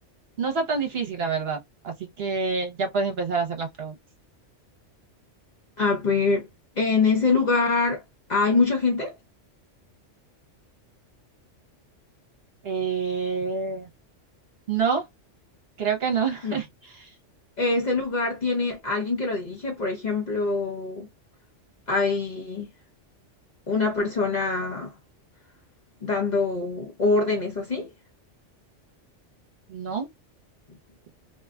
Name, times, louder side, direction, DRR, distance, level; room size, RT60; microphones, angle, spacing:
voice 1, 0.4-3.9 12.6-13.9 14.7-15.0 15.8-16.7 17.0-17.1 29.7-30.1, right 5 dB, 60° right, 1.0 m, -27 dB
voice 2, 5.8-6.5 6.8-8.0 8.3-9.1 16.4-16.6 17.6-21.1 21.9-22.7 23.7-24.9 26.0-27.9, left 4 dB, 45° left, 0.7 m, -24 dB
2.7 x 2.2 x 2.4 m
omnidirectional pair, 1.3 m